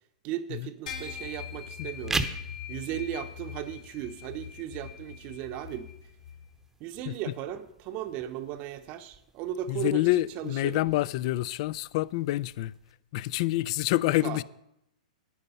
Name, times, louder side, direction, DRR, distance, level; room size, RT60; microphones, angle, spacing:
voice 1, 0.2-2.2 2.7-5.9 6.8-10.0 10.4-10.9 14.2-14.4, right 11 dB, 40° right, 0.7 m, -36 dB
sound 1, 0.9-6.5, left 8 dB, 70° left, 3.3 m, -42 dB
sound 2, 1.9-12.9, right 3 dB, 10° right, 0.8 m, -42 dB
voice 2, 9.7-12.7 13.1-14.4, left 17 dB, 50° left, 0.3 m, -27 dB
10.0 x 9.4 x 5.5 m
hypercardioid pair, 135°, 4 cm